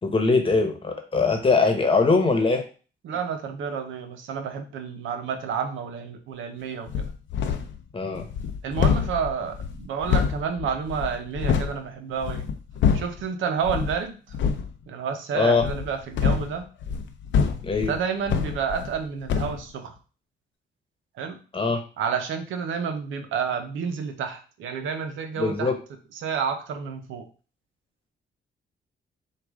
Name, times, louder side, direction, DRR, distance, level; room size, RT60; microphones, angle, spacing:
voice 1, 0.0-2.6 7.9-8.2 15.3-15.7 17.6-17.9 21.5-21.8 25.4-25.7, left 4 dB, 25° left, 4 dB, 1.0 m, -21 dB
voice 2, 3.0-7.1 8.6-12.5 12.9-14.4 14.9-16.7 17.9-19.9 21.2-21.4 22.0-25.7 26.1-27.3, right 6 dB, 85° right, 6 dB, 0.7 m, -30 dB
sound 1, 6.9-7.8 8.1-11.8 12.2-13.2 13.6-14.0 14.3-14.7 15.6-19.0 19.3-19.6, left 7 dB, 75° left, 0.6 m, -26 dB
4.7 x 2.4 x 3.5 m, 0.36 s
cardioid pair, 85°, 20 cm